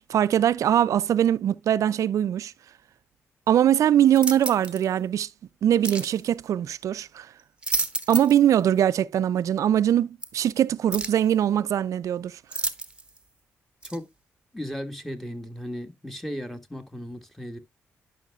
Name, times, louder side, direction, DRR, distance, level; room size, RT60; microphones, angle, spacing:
voice 1, 0.0-2.5 3.5-5.3 5.6-7.3 8.1-12.4, right 10 dB, 70° right, 0.4 m, -22 dB
sound 1, 4.1-4.8 5.8-6.2 7.4-8.5 8.8-8.9 10.2-10.3 10.9-11.3 12.5-13.2 13.8-14.0, right 3 dB, 20° right, 1.1 m, -31 dB
voice 2, 14.5-17.6, equal, 5° left, 1.7 m, -35 dB
11.0 x 5.8 x 2.3 m
supercardioid pair, 60°, 6 cm